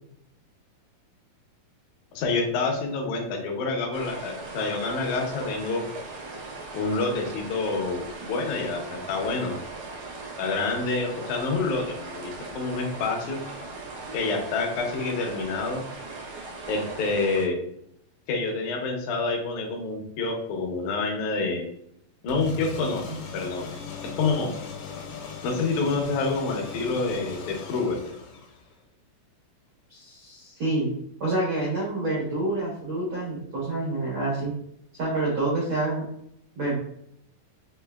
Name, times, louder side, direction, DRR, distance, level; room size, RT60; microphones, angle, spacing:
voice 1, 2.1-5.8 6.7-9.6 10.4-13.4 14.1-15.8 16.7-17.6 18.3-21.7 22.2-23.0 23.3-23.7 24.2-24.5 25.4-28.0, left 3 dB, 75° left, 1 dB, 1.9 m, -27 dB
sound 1, 3.9-17.4, right 3 dB, 90° right, 1.3 m, -39 dB
sound 2, 22.3-28.8, left 6 dB, 90° left, 2.4 m, -39 dB
voice 2, 29.9-30.9 31.2-34.5 34.9-36.0 36.6-36.8, right 2 dB, 70° right, -6 dB, 1.1 m, -27 dB
5.4 x 2.9 x 2.3 m, 0.71 s
omnidirectional pair, 4.1 m